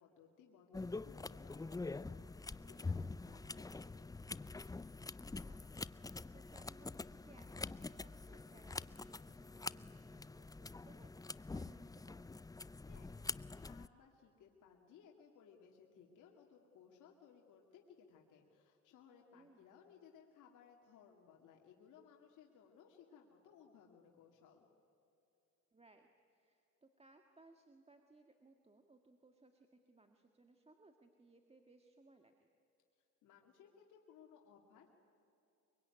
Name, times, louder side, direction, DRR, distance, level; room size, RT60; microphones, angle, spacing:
voice 1, 0.0-4.2 12.8-24.7 32.9-34.9, left 7 dB, 85° left, 0 dB, 2.5 m, -63 dB
sound 1, 0.7-13.9, left 3 dB, 10° left, 0.5 m, -46 dB
voice 2, 5.4-6.1 6.3-12.3 19.3-19.6 25.7-32.5, right 2 dB, 20° right, 5 dB, 1.8 m, -66 dB
24.0 x 23.5 x 9.8 m, 2.8 s
cardioid pair, 90°, 30 cm